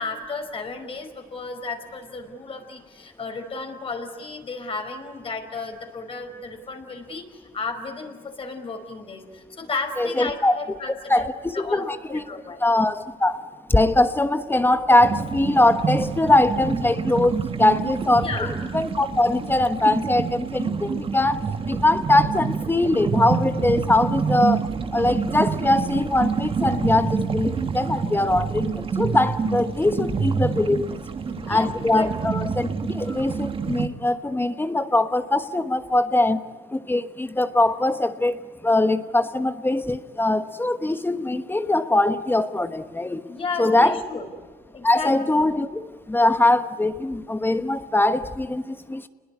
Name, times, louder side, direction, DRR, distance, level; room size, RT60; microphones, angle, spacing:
voice 1, 0.0-11.2 11.5-12.6 18.2-18.5 31.3-32.3 43.3-44.3 44.7-45.5, left 4 dB, 35° left, 5 dB, 4.8 m, -34 dB
voice 2, 10.0-10.6 11.1-12.3 12.6-18.5 18.7-31.0 31.5-36.4 36.7-43.2 43.6-44.0 44.8-49.1, left 2 dB, 10° left, 10 dB, 1.1 m, -22 dB
sound 1, 15.0-33.9, right 5 dB, 30° right, 1.7 m, -27 dB
29.0 x 21.0 x 9.8 m, 1.5 s
cardioid pair, 110°, 17 cm